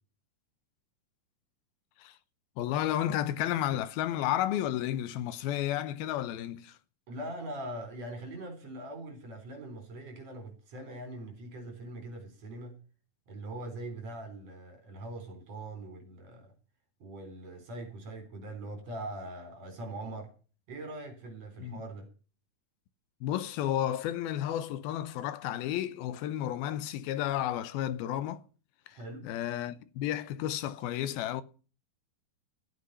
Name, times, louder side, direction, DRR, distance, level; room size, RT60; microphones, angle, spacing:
voice 1, 2.6-6.8 21.6-21.8 23.2-28.4 28.9-29.0 29.2-31.4, left 12 dB, 90° left, 2.7 m, -32 dB
voice 2, 7.1-12.8 13.3-16.5 17.0-20.3 20.7-22.1 28.9-29.3, right 1 dB, 45° right, 4.9 m, -42 dB
14.0 x 8.6 x 5.5 m
omnidirectional pair, 4.3 m